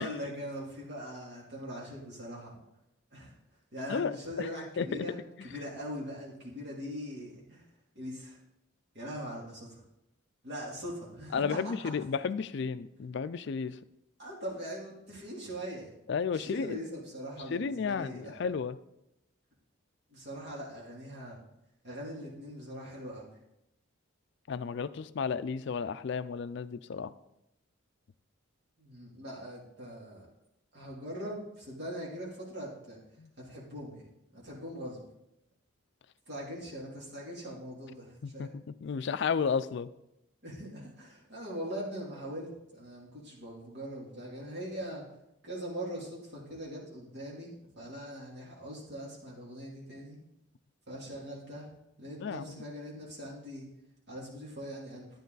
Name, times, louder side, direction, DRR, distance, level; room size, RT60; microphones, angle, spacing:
voice 1, 0.0-2.6 3.1-3.3 3.7-5.2 5.4-7.7 7.9-8.4 8.9-9.8 10.4-11.9 14.2-15.9 16.3-18.4 20.1-21.4 21.8-23.3 28.8-30.3 30.7-33.0 33.4-35.0 36.3-38.6 40.4-45.0 45.4-50.2 50.9-51.7 52.0-53.7 54.1-55.1, equal, 55° right, -4 dB, 3.0 m, -41 dB
voice 2, 3.9-4.5 4.8-5.1 11.3-13.8 16.1-16.8 17.5-18.8 24.5-27.1 33.2-33.3 38.2-38.5 38.8-39.9 52.2-52.6, left 5 dB, 55° left, 14 dB, 0.4 m, -33 dB
11.5 x 9.1 x 4.0 m, 0.86 s
head